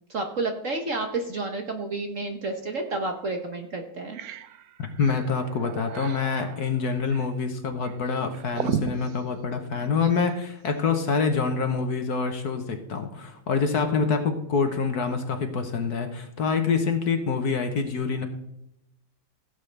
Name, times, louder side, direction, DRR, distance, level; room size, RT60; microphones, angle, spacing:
voice 1, 0.1-4.2, right 3 dB, 50° right, 4 dB, 1.1 m, -30 dB
sound 1, 2.9-3.0 3.5-3.6 3.9-10.3, right 8 dB, 75° right, 0.8 m, -36 dB
voice 2, 5.0-18.3, left 5 dB, 55° left, 6 dB, 1.4 m, -26 dB
16.5 x 8.2 x 3.3 m, 0.83 s
omnidirectional pair, 2.2 m